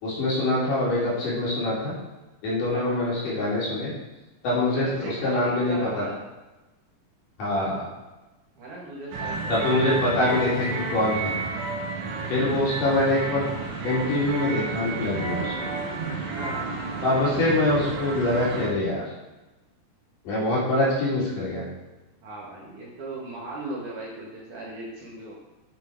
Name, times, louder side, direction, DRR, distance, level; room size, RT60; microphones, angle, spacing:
voice 1, 0.0-1.9 2.4-3.9 4.4-6.0 7.4-7.9 9.5-11.4 12.3-13.4 13.8-15.7 17.0-19.1 20.2-21.7, left 1 dB, 55° left, -7 dB, 4.4 m, -24 dB
voice 2, 2.7-3.0 4.7-6.2 8.6-9.7 12.2-12.8 16.3-16.9 22.2-25.3, right 2 dB, 55° right, -5 dB, 2.7 m, -37 dB
sound 1, 9.1-18.7, right 3 dB, 85° right, 3.8 m, -31 dB
10.5 x 6.8 x 4.6 m, 1.1 s
omnidirectional pair, 4.8 m